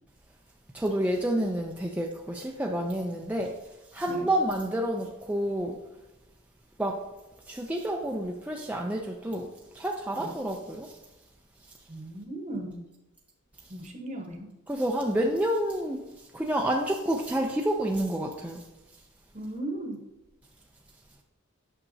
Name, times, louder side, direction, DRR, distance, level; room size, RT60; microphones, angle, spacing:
voice 1, 0.7-3.6 3.9-5.8 6.8-7.0 7.5-9.5 9.7-10.9 14.7-16.0 16.3-18.6, right 1 dB, 5° right, -1 dB, 0.4 m, -29 dB
voice 2, 11.9-12.8 13.7-14.5 19.3-20.0, right 1 dB, 35° right, 3 dB, 1.0 m, -37 dB
8.7 x 5.8 x 2.7 m, 1.0 s
head